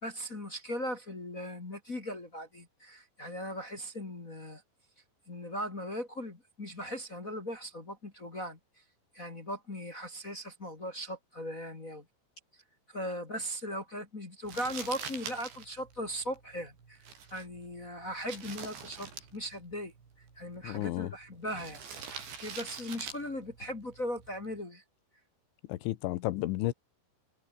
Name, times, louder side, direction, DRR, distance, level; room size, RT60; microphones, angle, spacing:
voice 1, 0.0-4.6 5.3-8.6 9.1-12.0 12.5-12.6 12.9-19.9 20.3-21.8 22.4-24.8, equal, 30° left, 1.6 m, -38 dB
Crumpling crinkling, 14.4-24.6, right 6 dB, 60° right, 8.0 m, -46 dB
voice 2, 20.6-21.1 25.7-26.7, left 17 dB, 75° left, 3.4 m, -32 dB
omnidirectional pair, 5.8 m